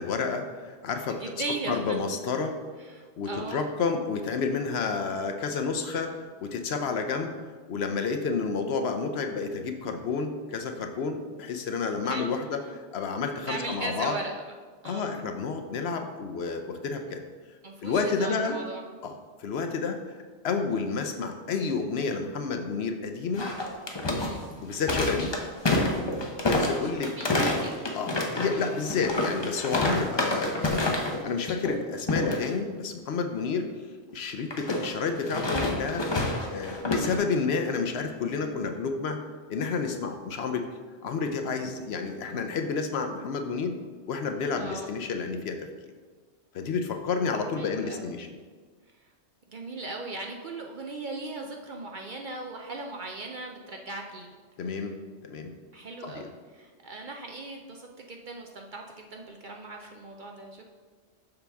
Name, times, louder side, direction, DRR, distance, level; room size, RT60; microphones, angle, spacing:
voice 1, 0.0-1.2 1.7-2.5 3.2-7.3 7.7-12.6 12.9-14.2 14.8-17.2 17.8-18.6 19.0-19.1 19.4-20.2 20.4-23.5 24.6-25.3 26.4-27.1 27.9-33.7 34.1-39.2 39.5-40.7 41.0-43.8 44.1-45.7 46.5-48.3 54.6-55.0 55.2-55.5 56.0-56.3, left 5 dB, 65° left, 5 dB, 0.8 m, -30 dB
voice 2, 1.0-2.0 2.8-3.6 12.0-12.3 13.5-14.4 14.8-15.1 17.6-18.8 24.2-24.4 27.0-27.7 44.6-44.9 47.6-48.1 49.0-49.1 49.5-54.3 55.7-60.6, right 2 dB, 55° right, 2 dB, 0.6 m, -38 dB
sound 1, 23.3-31.2 31.5-31.8 32.1-32.5 34.5-37.2, left 2 dB, 30° left, 0.6 m, -28 dB
6.8 x 5.6 x 3.5 m, 1.5 s
omnidirectional pair, 1.2 m